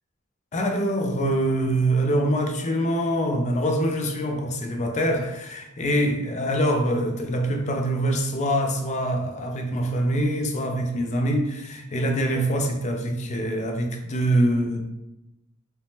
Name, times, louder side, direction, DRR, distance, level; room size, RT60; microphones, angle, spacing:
voice 1, 0.5-14.8, right 1 dB, 35° left, 0.4 m, -24 dB
3.2 x 2.0 x 2.8 m
head